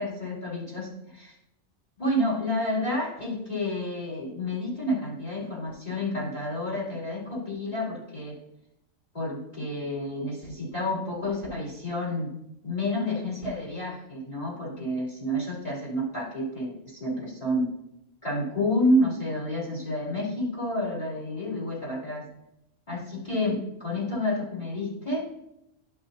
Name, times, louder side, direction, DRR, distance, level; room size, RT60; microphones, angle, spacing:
voice 1, 0.0-1.3 2.0-8.4 9.1-12.3 12.6-17.7 18.2-22.3 22.9-25.3, left 1 dB, 30° left, -7 dB, 3.1 m, -29 dB
12.0 x 5.6 x 2.7 m, 0.82 s
omnidirectional pair, 1.3 m